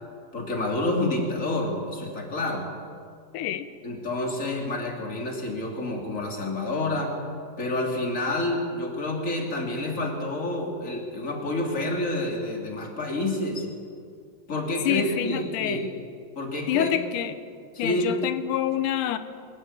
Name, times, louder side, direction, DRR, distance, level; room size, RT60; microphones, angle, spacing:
voice 1, 0.3-2.7 3.8-7.2 7.6-13.7 14.5-15.8 16.3-16.9 17.7-18.2, left 1 dB, 25° left, 1 dB, 2.6 m, -28 dB
voice 2, 3.3-3.7 14.9-15.8 16.7-17.3 17.8-19.2, left 11 dB, 75° left, 12 dB, 2.1 m, -27 dB
23.5 x 13.5 x 8.9 m, 2.3 s
omnidirectional pair, 4.2 m